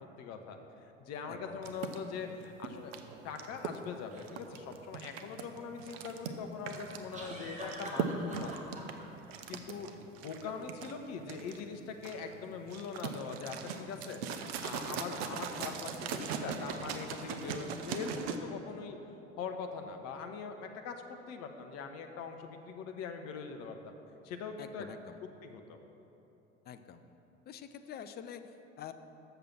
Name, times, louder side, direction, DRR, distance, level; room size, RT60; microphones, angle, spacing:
voice 1, 0.2-2.9 3.2-8.5 9.5-9.9 10.2-14.2 14.6-19.0 19.4-23.9 24.2-24.9 25.4-25.8, left 5 dB, 45° left, 5 dB, 0.9 m, -42 dB
voice 2, 1.3-1.9 24.6-25.2 26.6-27.1 27.5-28.9, left 8 dB, 25° left, 10 dB, 0.5 m, -47 dB
sound 1, 1.6-18.4, right 6 dB, 60° right, 0.7 m, -40 dB
sound 2, 4.1-4.3 7.1-9.0, right 1 dB, 20° right, 1.6 m, -44 dB
7.9 x 6.7 x 5.9 m, 3.0 s
figure-of-eight pair, 70°, 36 cm